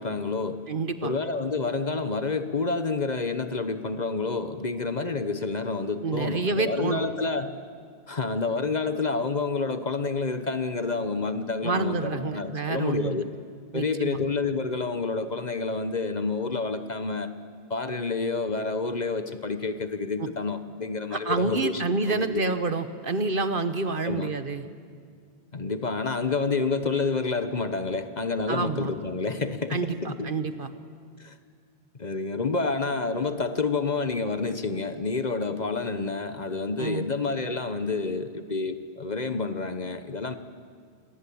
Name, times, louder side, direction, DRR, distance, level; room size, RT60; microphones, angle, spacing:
voice 1, 0.0-0.6 1.0-7.6 8.1-13.3 13.7-17.3 17.7-21.8 22.1-22.4 24.0-24.3 25.5-30.3 31.2-31.4 32.0-40.4, left 4 dB, 40° left, 10 dB, 1.2 m, -29 dB
voice 2, 0.7-1.1 6.0-7.0 11.6-13.2 13.7-14.2 20.2-20.3 21.1-24.6 28.5-28.9 29.7-30.7 36.8-37.0, right 3 dB, 50° right, 10 dB, 1.3 m, -28 dB
28.0 x 20.0 x 8.7 m, 2.1 s
omnidirectional pair, 1.1 m